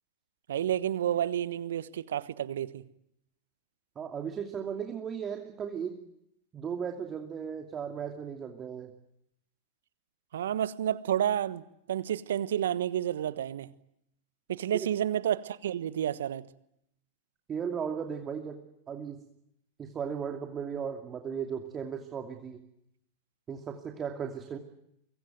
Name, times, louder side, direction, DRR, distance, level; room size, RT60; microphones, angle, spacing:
voice 1, 0.5-2.8 10.3-13.7 14.5-16.4, right 10 dB, 70° right, 1.2 m, -30 dB
voice 2, 4.0-6.0 6.5-8.9 17.5-18.6 18.9-19.2 19.8-22.6 23.5-24.6, right 7 dB, 25° right, 2.7 m, -36 dB
24.5 x 23.5 x 9.2 m
figure-of-eight pair, 90°, 0 cm